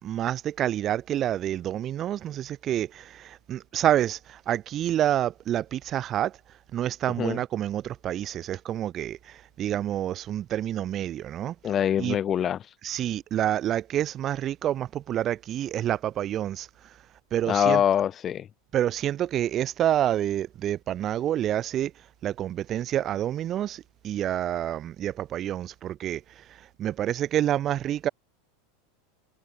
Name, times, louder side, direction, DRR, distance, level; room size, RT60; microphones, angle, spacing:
voice 1, 0.0-6.4 6.7-11.5 12.0-12.2 12.8-16.7 17.3-17.8 18.7-21.9 22.2-28.1, right 11 dB, 35° right, 1.3 m, -28 dB
voice 2, 11.6-12.6 17.5-18.5, left 9 dB, 30° left, 0.9 m, -24 dB
supercardioid pair, 115°, 0 cm